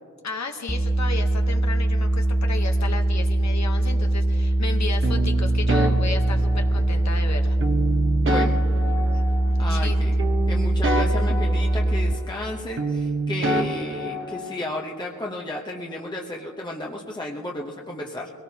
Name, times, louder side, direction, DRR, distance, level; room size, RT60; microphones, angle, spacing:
voice 1, 0.2-7.6 9.1-10.0, left 4 dB, 60° left, 4 dB, 1.0 m, -34 dB
sound 1, 0.7-12.1, right 1 dB, 5° right, 0.4 m, -22 dB
sound 2, 5.0-7.0 7.6-9.9 10.2-12.5 12.8-14.8, right 2 dB, 40° right, 1.0 m, -27 dB
voice 2, 8.2-8.6 9.6-18.3, left 1 dB, 15° left, -1 dB, 0.8 m, -33 dB
23.0 x 18.0 x 2.8 m, 2.2 s
wide cardioid pair, 145°, 31 cm